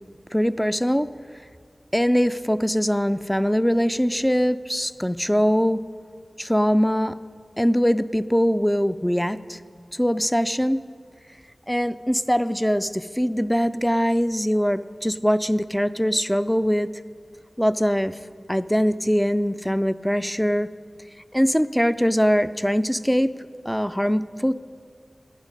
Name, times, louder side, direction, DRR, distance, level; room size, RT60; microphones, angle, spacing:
voice 1, 0.3-1.1 1.9-5.8 6.4-7.1 7.6-9.6 10.0-10.8 11.7-16.9 17.6-18.1 18.5-20.7 21.3-23.3 23.7-24.5, equal, 5° left, 14 dB, 0.4 m, -22 dB
19.5 x 7.3 x 5.2 m, 2.1 s
wide cardioid pair, 55°, 0 cm